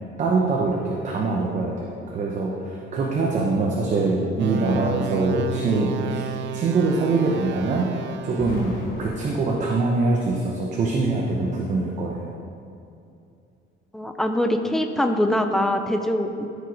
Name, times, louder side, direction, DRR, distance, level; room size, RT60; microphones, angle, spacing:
voice 1, 0.2-7.9 8.2-8.7 9.0-12.3, right 3 dB, 35° right, -1 dB, 0.8 m, -24 dB
sound 1, 4.4-8.8, right 7 dB, 60° right, 0.5 m, -32 dB
Explosion, 8.3-10.5, left 1 dB, 80° left, 2.3 m, -38 dB
voice 2, 13.9-16.5, left 1 dB, ahead, 5 dB, 0.4 m, -23 dB
13.0 x 5.0 x 4.7 m, 2.6 s
cardioid pair, 170°, 21 cm